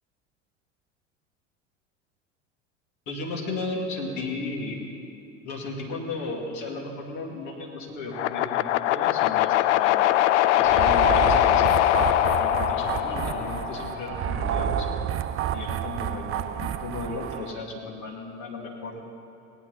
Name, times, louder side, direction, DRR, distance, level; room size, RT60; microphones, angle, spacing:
voice 1, 3.1-4.9 5.4-10.2 10.6-14.9 15.5-19.0, left 3 dB, 50° left, -1 dB, 2.6 m, -35 dB
sound 1, 8.1-14.3, left 14 dB, 65° left, 0.5 m, -22 dB
sound 2, 10.6-17.5, right 9 dB, 35° right, 0.6 m, -29 dB
18.0 x 11.0 x 4.1 m, 2.7 s
figure-of-eight pair, 75°, 38 cm